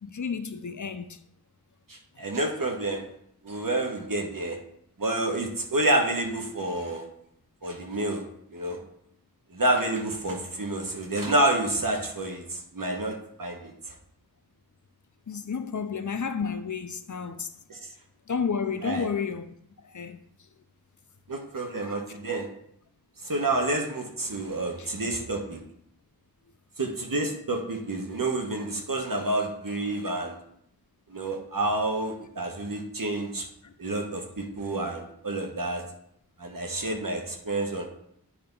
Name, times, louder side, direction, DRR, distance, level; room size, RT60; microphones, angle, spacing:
voice 1, 0.0-1.2 15.3-17.5 18.3-19.5 19.9-20.2 21.8-21.9 24.8-24.9, left 6 dB, 50° left, 0.5 m, -31 dB
voice 2, 1.9-3.0 3.4-4.6 5.0-7.1 7.6-8.2 8.5-8.8 9.5-13.9 17.7-17.9 18.8-19.1 21.3-22.5 23.2-25.6 26.8-30.4 31.1-33.5 33.8-35.8 36.4-37.9, right 2 dB, 60° right, 1.2 m, -29 dB
8.6 x 3.4 x 5.4 m
wide cardioid pair, 55°, 38 cm